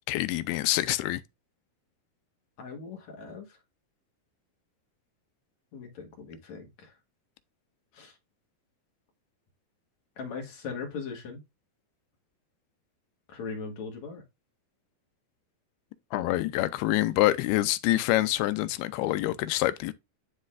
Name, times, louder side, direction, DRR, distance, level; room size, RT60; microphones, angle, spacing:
voice 1, 0.1-1.2 16.1-19.9, left 16 dB, 85° left, 2.6 m, -26 dB
voice 2, 2.6-3.5 5.7-6.9 7.9-8.1 10.2-11.4 13.3-14.2, left 5 dB, 50° left, 2.8 m, -39 dB
12.0 x 4.1 x 2.5 m
omnidirectional pair, 4.4 m